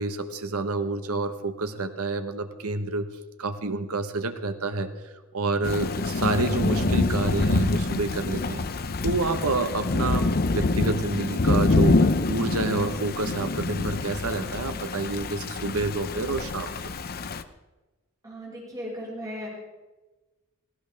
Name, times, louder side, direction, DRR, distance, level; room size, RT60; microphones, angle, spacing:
voice 1, 0.0-3.1 3.4-8.7 9.0-16.8, right 3 dB, 80° right, 8 dB, 1.2 m, -28 dB
Thunder / Rain, 5.6-17.4, left 3 dB, 45° left, 0.6 m, -26 dB
voice 2, 18.2-19.5, equal, 15° right, -5 dB, 6.0 m, -36 dB
17.5 x 17.0 x 3.5 m, 1.2 s
head